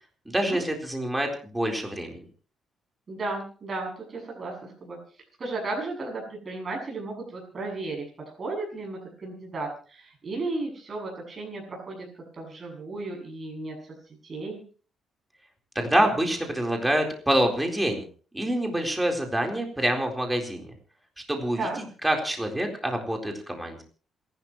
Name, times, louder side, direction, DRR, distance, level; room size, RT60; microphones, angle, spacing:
voice 1, 0.3-2.2 15.7-18.0 18.3-20.7 21.3-21.7 22.0-23.8, right 1 dB, 10° right, 2 dB, 4.1 m, -26 dB
voice 2, 3.1-5.0 5.4-12.1 12.4-13.9 14.2-14.6 21.6-21.8, right 2 dB, 40° right, -1 dB, 7.4 m, -34 dB
27.5 x 12.5 x 3.1 m, 0.40 s
cardioid pair, 90°, 0 cm